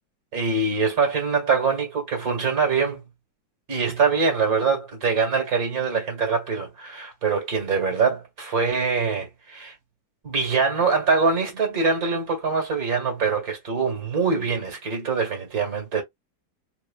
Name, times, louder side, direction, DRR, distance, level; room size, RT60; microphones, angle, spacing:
voice 1, 0.3-3.0 3.7-9.7 10.2-16.0, right 5 dB, 45° right, 2.1 m, -23 dB
4.6 x 3.0 x 2.5 m
omnidirectional pair, 2.2 m